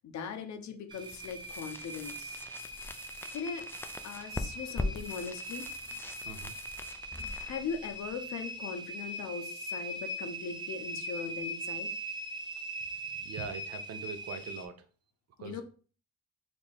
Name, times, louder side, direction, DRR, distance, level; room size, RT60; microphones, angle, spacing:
voice 1, 0.0-2.4 3.3-3.6 4.0-5.7 7.1-11.9 15.4-15.6, left 5 dB, 65° left, 6 dB, 0.8 m, -40 dB
sound 1, 0.9-8.7, left 2 dB, 10° left, 0.4 m, -42 dB
sound 2, 0.9-14.6, right 1 dB, 15° right, 0.8 m, -41 dB
voice 2, 6.2-6.5 13.2-14.8 15.4-15.6, right 6 dB, 55° right, 9 dB, 0.7 m, -42 dB
4.3 x 2.9 x 3.5 m, 0.38 s
cardioid pair, 90°, 30 cm